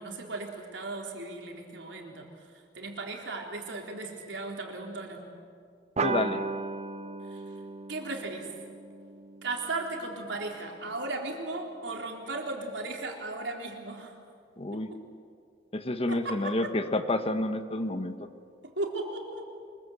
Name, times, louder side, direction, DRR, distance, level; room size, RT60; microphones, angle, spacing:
voice 1, 0.0-2.3 2.5-5.2 7.3-7.4 7.9-8.5 9.4-14.1 14.7-15.0 16.1-16.7 18.6-19.5, right 2 dB, 85° right, 1 dB, 4.0 m, -36 dB
voice 2, 6.0-6.4 14.6-14.9 15.7-18.3, left 1 dB, 35° left, 9 dB, 1.2 m, -29 dB
sound 1, 6.0-10.9, right 4 dB, 35° right, 0.7 m, -36 dB
24.5 x 22.5 x 8.1 m, 2.2 s
head